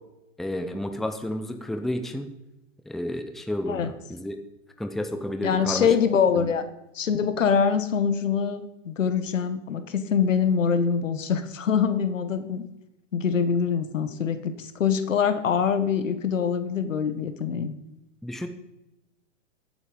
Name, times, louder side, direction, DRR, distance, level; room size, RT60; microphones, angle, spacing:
voice 1, 0.4-2.3 2.9-4.3 4.8-5.9 6.4-6.5 18.2-18.5, left 1 dB, ahead, 6 dB, 0.8 m, -31 dB
voice 2, 5.4-6.6 6.9-12.6 13.1-17.7, left 6 dB, 85° left, 10 dB, 1.6 m, -24 dB
14.5 x 9.0 x 5.3 m, 0.93 s
hypercardioid pair, 130°, 37 cm